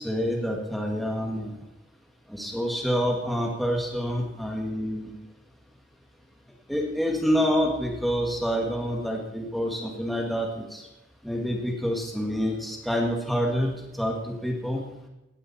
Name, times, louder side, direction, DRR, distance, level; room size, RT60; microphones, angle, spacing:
voice 1, 0.0-1.5 2.3-5.1 6.7-10.9 11.2-14.8, equal, ahead, 0 dB, 2.1 m, -27 dB
17.0 x 12.0 x 4.4 m, 0.94 s
head